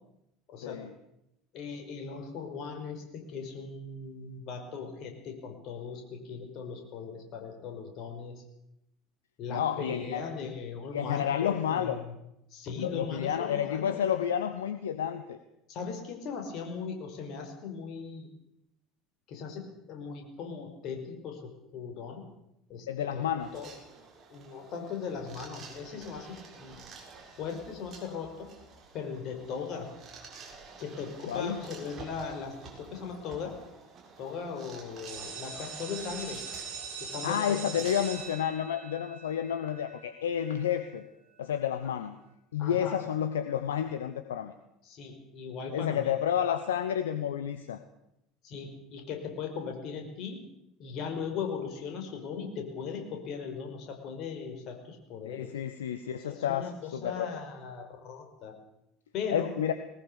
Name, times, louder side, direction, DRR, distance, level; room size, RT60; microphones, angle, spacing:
voice 1, 0.5-0.8 1.5-8.4 9.4-12.1 12.5-14.0 15.7-18.3 19.3-22.3 22.7-23.7 24.3-26.8 27.4-28.5 28.9-29.9 30.8-33.6 34.2-36.5 37.0-37.8 41.8-41.9 42.6-43.0 44.8-46.2 48.4-50.4 50.8-55.5 56.2-58.6 59.1-59.5, left 5 dB, 50° left, 4 dB, 5.3 m, -39 dB
voice 2, 9.5-10.2 10.9-12.0 12.8-15.4 22.9-23.5 31.3-31.6 37.2-41.0 41.4-42.2 42.5-44.5 45.7-47.8 55.2-57.3 59.3-59.7, left 9 dB, 75° left, 9 dB, 1.1 m, -30 dB
sound 1, 23.4-38.4, right 4 dB, 40° right, 6.8 m, -50 dB
sound 2, 35.1-40.7, right 5 dB, 65° right, 5.7 m, -42 dB
20.5 x 19.0 x 7.0 m, 0.84 s
figure-of-eight pair, 65°, 0 cm